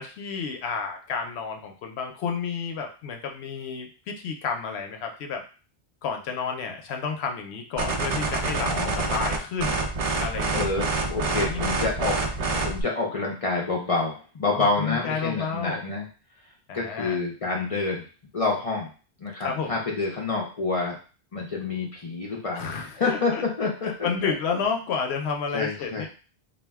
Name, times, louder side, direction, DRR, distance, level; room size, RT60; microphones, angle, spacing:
voice 1, 0.0-5.4 6.0-8.7 9.0-9.8 10.2-10.9 11.3-11.8 14.5-15.8 16.7-17.2 19.4-19.8 22.5-26.1, left 5 dB, 80° left, 3 dB, 0.8 m, -31 dB
sound 1, 7.8-12.8, right 3 dB, 55° right, 0.4 m, -27 dB
voice 2, 8.6-9.1 10.5-16.1 16.7-18.1 18.3-18.9 19.2-20.9 21.3-24.6 25.5-26.1, left 3 dB, 45° left, -3 dB, 0.5 m, -28 dB
2.4 x 2.1 x 3.4 m, 0.37 s
omnidirectional pair, 1.1 m